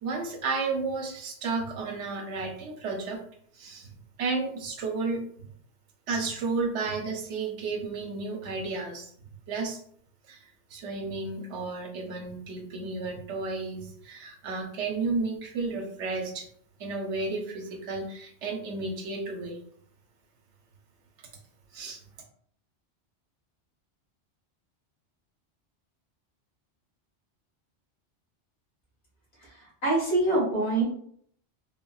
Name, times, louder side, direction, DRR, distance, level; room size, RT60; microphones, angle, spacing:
voice 1, 0.0-3.2 3.6-3.9 4.2-5.2 6.1-9.1 9.5-9.8 10.3-10.4 10.7-16.5 16.8-19.6 21.7-22.0, right 3 dB, 85° right, 3 dB, 0.9 m, -32 dB
voice 2, 29.8-30.8, right 2 dB, 60° left, -6 dB, 1.7 m, -24 dB
3.5 x 2.1 x 2.3 m, 0.63 s
omnidirectional pair, 1.2 m